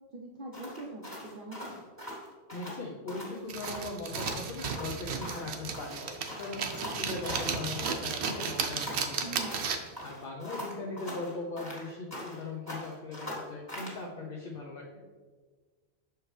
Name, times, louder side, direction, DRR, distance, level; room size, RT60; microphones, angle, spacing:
voice 1, 0.1-1.8 9.2-9.7, right 2 dB, 55° right, -2 dB, 0.8 m, -43 dB
sound 1, 0.5-2.8 3.1-3.4 3.6-5.5 5.7-8.0 8.3-9.7 10.0-12.4 12.7-14.0, equal, 15° left, 1.7 m, -41 dB
voice 2, 2.5-9.2 10.0-15.0, left 3 dB, 60° left, -1 dB, 0.9 m, -39 dB
sound 2, 3.5-10.0, right 6 dB, 80° right, 0.9 m, -34 dB
6.4 x 4.6 x 3.2 m, 1.5 s
omnidirectional pair, 1.1 m